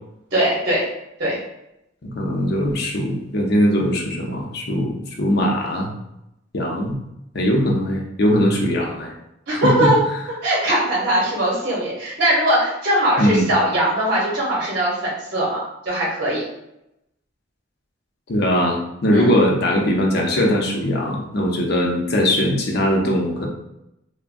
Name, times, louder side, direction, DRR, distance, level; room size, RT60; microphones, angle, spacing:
voice 1, 0.3-0.9 1.2-1.4 9.5-10.0 10.4-16.4 19.1-19.3, right 1 dB, 60° right, -5 dB, 1.0 m, -20 dB
voice 2, 2.0-5.9 6.5-7.0 7.3-9.1 9.5-9.9 13.2-13.5 18.3-23.5, equal, 60° left, 0 dB, 0.6 m, -20 dB
3.4 x 2.1 x 2.5 m, 0.84 s
head